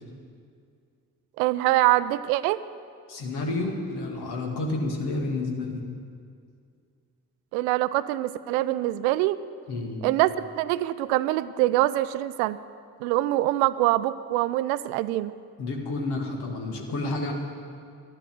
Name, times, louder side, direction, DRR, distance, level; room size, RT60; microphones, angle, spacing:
voice 1, 1.4-2.6 7.5-9.4 10.0-12.6 13.0-15.3, right 16 dB, 65° right, 16 dB, 0.5 m, -24 dB
voice 2, 3.1-5.8 9.7-10.0 15.6-17.3, left 2 dB, 55° left, 2 dB, 2.2 m, -30 dB
12.0 x 11.5 x 7.7 m, 2.3 s
figure-of-eight pair, 40°, 45 cm